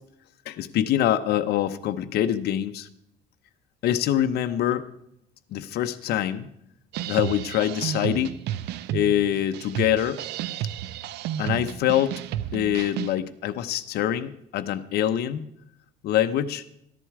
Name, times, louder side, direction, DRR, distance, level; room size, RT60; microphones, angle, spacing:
voice 1, 0.5-2.9 3.8-4.8 5.5-6.5 7.0-8.3 8.9-10.2 11.4-12.2 12.5-15.5 16.0-16.6, left 11 dB, 70° left, 9 dB, 0.8 m, -24 dB
sound 1, 6.9-13.2, right 11 dB, 85° right, 0.7 m, -32 dB
13.5 x 10.5 x 4.8 m, 0.75 s
cardioid pair, 110°, 17 cm